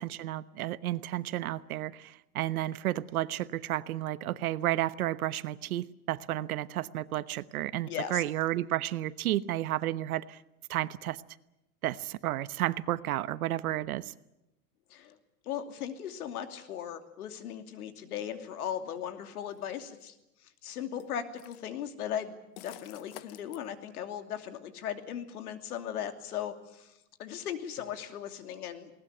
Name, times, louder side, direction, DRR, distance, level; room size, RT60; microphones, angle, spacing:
voice 1, 0.0-10.4 10.7-11.2 11.8-14.1, right 14 dB, 70° right, 1.1 m, -32 dB
voice 2, 7.9-8.2 14.9-15.1 15.5-20.1 20.6-22.3 22.6-26.9 27.2-28.9, left 9 dB, 80° left, 2.9 m, -37 dB
sound 1, 19.5-19.6 21.0-21.7 22.6-23.6, left 16 dB, 40° left, 0.8 m, -48 dB
20.5 x 19.0 x 9.9 m
supercardioid pair, 165°, 44 cm